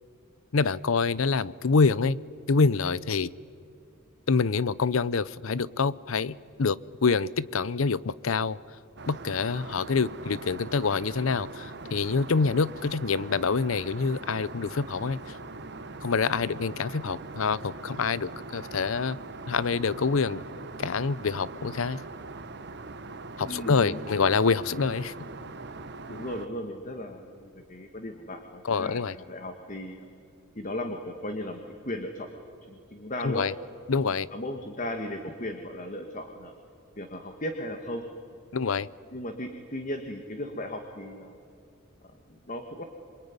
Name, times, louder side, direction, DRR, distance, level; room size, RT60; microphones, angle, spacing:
voice 1, 0.5-2.2 2.5-3.3 4.3-8.6 9.1-15.4 16.0-19.2 19.5-20.4 20.8-22.0 23.4-25.1 28.6-29.1 33.2-33.5 33.9-34.3 38.5-38.9, left 4 dB, 70° left, 20 dB, 0.7 m, -26 dB
Aircraft, 9.0-26.5, right 3 dB, 55° right, 1.4 m, -42 dB
voice 2, 23.5-24.3 26.1-30.1 30.6-32.3 32.7-33.5 34.3-36.5 37.0-38.0 39.1-41.4 42.3-42.8, left 1 dB, 40° left, 6 dB, 1.8 m, -36 dB
27.0 x 23.0 x 9.7 m, 2.4 s
head